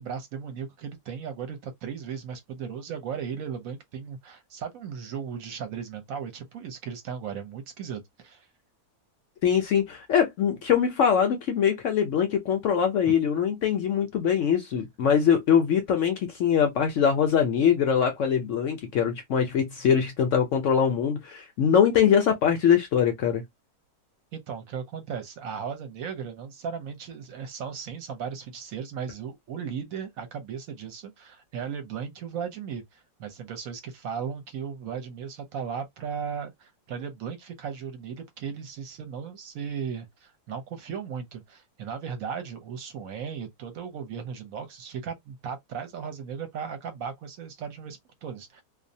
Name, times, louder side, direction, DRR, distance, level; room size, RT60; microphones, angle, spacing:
voice 1, 0.0-8.5 24.3-48.6, right 7 dB, 65° right, 1.0 m, -36 dB
voice 2, 9.4-23.4, left 8 dB, 70° left, 0.7 m, -23 dB
2.6 x 2.1 x 2.6 m
omnidirectional pair, 1.7 m